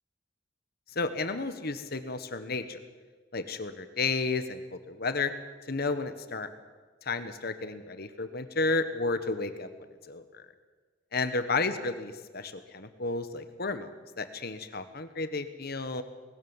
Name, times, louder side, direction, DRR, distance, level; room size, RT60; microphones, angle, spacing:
voice 1, 0.9-2.8 3.3-5.3 5.7-6.5 7.0-9.7 10.1-10.4 11.1-13.9 14.2-16.0, left 3 dB, 55° left, 10 dB, 1.5 m, -32 dB
20.0 x 18.5 x 7.4 m, 1.4 s
head